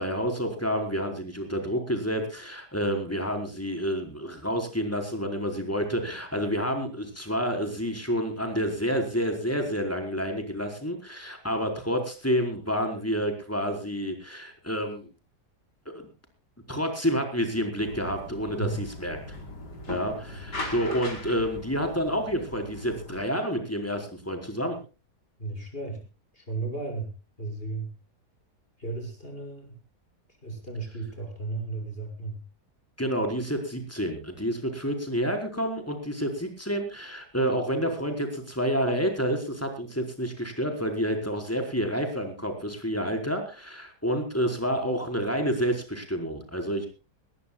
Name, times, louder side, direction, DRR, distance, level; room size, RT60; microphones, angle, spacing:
voice 1, 0.0-15.1 15.9-16.1 16.7-19.2 19.9-24.8 33.0-46.9, equal, 10° left, 4 dB, 4.5 m, -29 dB
sound 1, 17.8-23.2, left 2 dB, 80° left, 4.9 m, -39 dB
voice 2, 25.4-26.0 26.3-27.1 27.4-27.9 28.8-29.8 30.4-32.4, right 3 dB, 35° left, 3 dB, 6.6 m, -34 dB
20.5 x 20.0 x 2.3 m, 0.32 s
omnidirectional pair, 1.8 m